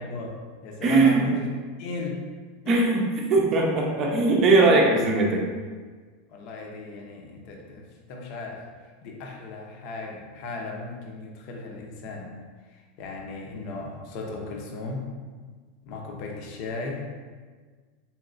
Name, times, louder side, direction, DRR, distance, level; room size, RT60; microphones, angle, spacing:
voice 1, 0.0-1.5 1.8-2.3 2.6-2.8 6.3-8.6 9.0-12.4 12.7-15.1 15.9-17.1, left 3 dB, 50° left, 1 dB, 0.6 m, -36 dB
voice 2, 0.8-1.3 2.7-5.4, right 3 dB, 30° right, -1 dB, 0.6 m, -20 dB
4.2 x 2.9 x 2.5 m, 1.5 s
supercardioid pair, 155°, 0 cm